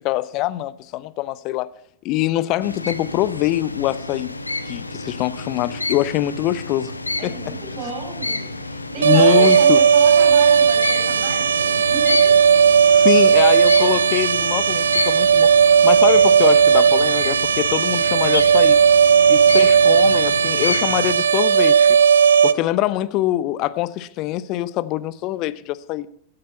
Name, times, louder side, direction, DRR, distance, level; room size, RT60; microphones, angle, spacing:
voice 1, 0.0-1.7 2.0-4.3 4.7-6.9 7.2-7.5 9.0-9.8 12.9-15.5 15.8-18.8 19.3-22.0 22.4-26.1, left 15 dB, 40° left, 0.7 m, -23 dB
sound 1, 2.6-21.1, left 2 dB, 80° left, 0.9 m, -30 dB
voice 2, 7.2-12.3, right 5 dB, 40° right, 5.1 m, -32 dB
sound 2, 9.0-22.5, right 7 dB, 70° right, 0.6 m, -15 dB
15.5 x 14.0 x 4.3 m
figure-of-eight pair, 90°, 0 cm